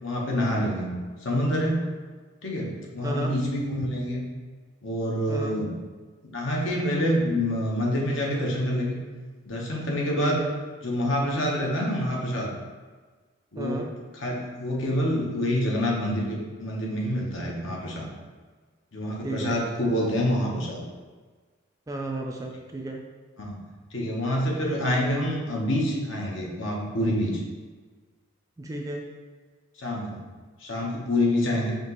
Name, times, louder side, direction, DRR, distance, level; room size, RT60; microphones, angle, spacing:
voice 1, 0.0-0.9 1.2-1.8 2.4-4.2 4.8-5.7 6.3-9.0 9.4-10.5 10.8-12.5 13.5-13.9 14.1-18.1 18.9-20.8 23.4-23.6 23.9-27.4 29.8-30.2 30.6-31.8, equal, 65° left, -2 dB, 0.9 m, -27 dB
voice 2, 3.0-3.3 5.3-5.6 10.2-10.5 13.6-13.9 19.2-19.6 21.9-23.0 28.6-29.0, right 2 dB, 15° right, 1 dB, 0.3 m, -33 dB
5.8 x 2.8 x 2.9 m, 1.4 s
head